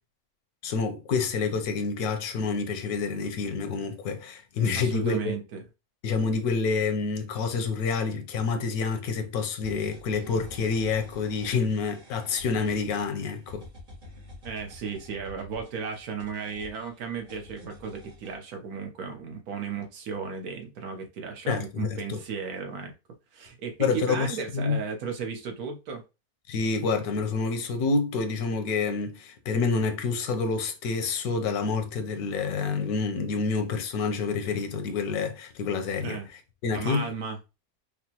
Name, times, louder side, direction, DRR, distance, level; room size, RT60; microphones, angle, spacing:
voice 1, 0.6-5.4 6.0-13.6 21.5-22.2 23.8-24.8 26.5-36.2 36.6-37.1, left 4 dB, 85° left, 1.2 m, -28 dB
voice 2, 4.7-5.6 14.4-22.9 23.3-26.0 36.0-36.3 36.7-37.4, right 6 dB, 80° right, 1.3 m, -35 dB
sound 1, 9.6-18.4, left 1 dB, 55° right, 1.9 m, -48 dB
4.8 x 2.0 x 2.8 m
omnidirectional pair, 1.6 m